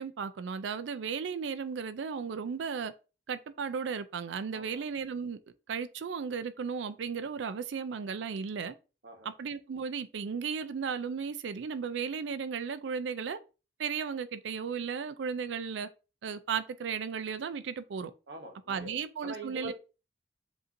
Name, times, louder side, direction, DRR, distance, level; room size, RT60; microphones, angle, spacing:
voice 1, 0.0-2.9 3.3-5.4 5.7-8.7 9.2-13.4 13.8-15.9 16.2-18.1 18.7-19.7, right 6 dB, 85° right, 0.4 m, -35 dB
voice 2, 4.5-4.8 9.0-9.3 18.3-18.9 19.2-19.7, right 2 dB, 65° right, 1.3 m, -44 dB
7.6 x 2.7 x 2.6 m
head